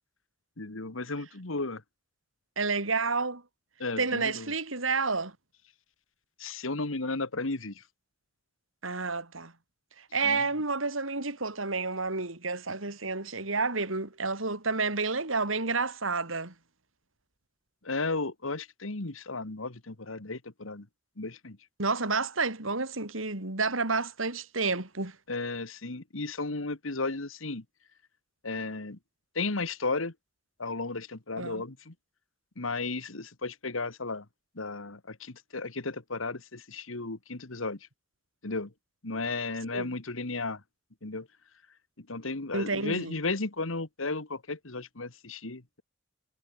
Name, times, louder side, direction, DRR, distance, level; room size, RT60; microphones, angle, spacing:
voice 1, 0.6-1.8 3.8-4.5 6.4-7.8 10.2-10.4 17.8-20.9 21.2-21.6 25.3-27.6 28.4-29.0 29.4-30.1 30.6-31.9 32.6-34.3 34.6-37.8 38.4-38.7 39.0-40.6 41.0-41.3 42.0-45.8, left 3 dB, 80° left, 1.9 m, -34 dB
voice 2, 2.6-3.4 4.0-5.3 8.8-9.5 10.1-16.5 21.8-25.2 31.4-31.6 39.7-39.9 42.5-43.1, right 4 dB, 85° right, 4.2 m, -30 dB
head